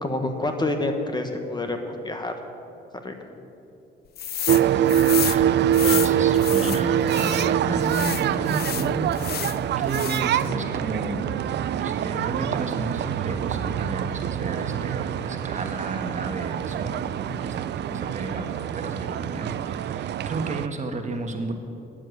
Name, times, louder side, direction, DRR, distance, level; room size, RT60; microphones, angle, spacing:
voice 1, 0.0-2.3 3.0-3.5, left 2 dB, 20° left, 5 dB, 1.2 m, -28 dB
sound 1, 4.2-4.6 4.9-7.5 7.9-9.6 9.9-10.4, left 10 dB, 50° left, 0.5 m, -30 dB
sound 2, 4.5-20.7, right 10 dB, 60° right, 0.4 m, -25 dB
voice 2, 5.2-11.3 11.7-21.5, right 2 dB, 35° right, 5 dB, 1.4 m, -33 dB
10.0 x 7.6 x 9.3 m, 2.7 s
cardioid pair, 90°, 20 cm